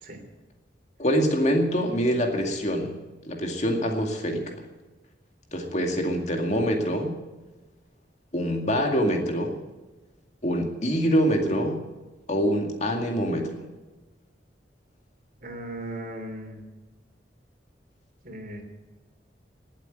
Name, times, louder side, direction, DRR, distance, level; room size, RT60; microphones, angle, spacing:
voice 1, 1.0-3.0 3.3-4.6 5.5-7.2 8.3-9.6 10.4-11.8 12.3-13.7, equal, 40° left, 2 dB, 2.2 m, -25 dB
voice 2, 15.4-16.6 18.2-18.6, right 1 dB, 50° right, 4 dB, 3.2 m, -37 dB
19.0 x 8.1 x 9.2 m, 1.2 s
head